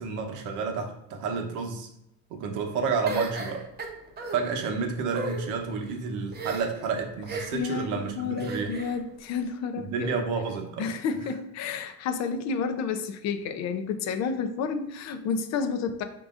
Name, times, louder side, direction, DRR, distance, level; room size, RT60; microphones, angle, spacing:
voice 1, 0.0-1.9 2.3-3.7 4.3-8.8 9.8-10.9, right 5 dB, 65° right, 4 dB, 0.9 m, -30 dB
sound 1, 3.1-4.4 5.0-5.4 6.3-6.8 7.3-7.7 8.4-8.9, right 3 dB, 30° right, 0.7 m, -35 dB
voice 2, 7.5-10.2 10.8-16.0, left 5 dB, 55° left, 7 dB, 0.5 m, -30 dB
4.9 x 3.8 x 2.4 m, 0.83 s
cardioid pair, 125°, 34 cm